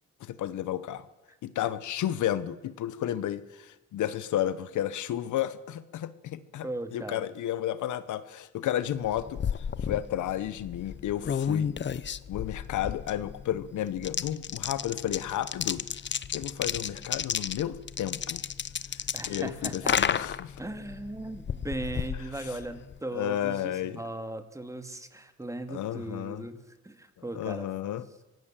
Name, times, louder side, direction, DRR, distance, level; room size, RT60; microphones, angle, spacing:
voice 1, 0.2-1.0 1.4-6.7 6.9-11.7 12.3-15.8 16.3-18.4 19.3-20.6 22.4-22.5 23.1-24.0 25.7-26.4 27.3-28.0, left 11 dB, 75° left, 15 dB, 1.1 m, -32 dB
voice 2, 6.6-7.3 19.1-20.0 20.6-27.7, right 2 dB, 10° right, 8 dB, 2.4 m, -38 dB
sound 1, 8.9-23.0, left 8 dB, 40° left, 0.8 m, -33 dB
24.0 x 17.0 x 7.5 m, 1.1 s
cardioid pair, 90°, 30 cm